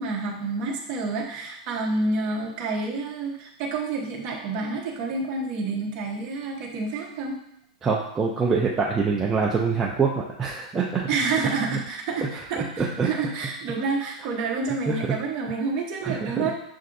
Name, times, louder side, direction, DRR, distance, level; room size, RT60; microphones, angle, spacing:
voice 1, 0.0-7.4 11.1-16.5, right 3 dB, 30° right, 0 dB, 0.7 m, -28 dB
voice 2, 7.8-11.1 12.6-13.1 14.9-15.0 16.0-16.5, right 5 dB, 10° right, -4 dB, 0.3 m, -25 dB
6.6 x 2.4 x 2.5 m, 0.78 s
supercardioid pair, 165°, 4 cm